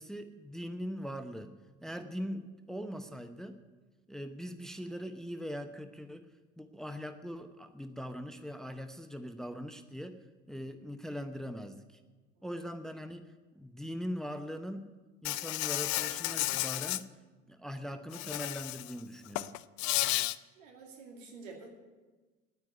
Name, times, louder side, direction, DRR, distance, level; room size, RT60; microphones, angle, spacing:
voice 1, 0.0-1.5 1.8-3.6 4.1-6.3 6.6-10.2 10.5-12.0 12.4-13.3 13.5-14.9 15.2-17.1 17.5-19.5, equal, ahead, 9 dB, 0.9 m, -41 dB
Insect, 15.2-17.0 18.1-18.9 19.3-20.3, left 18 dB, 50° left, 0.5 m, -32 dB
voice 2, 20.6-21.7, right 4 dB, 75° right, 1 dB, 2.4 m, -49 dB
9.5 x 9.4 x 9.5 m, 1.3 s
figure-of-eight pair, 60°, 38 cm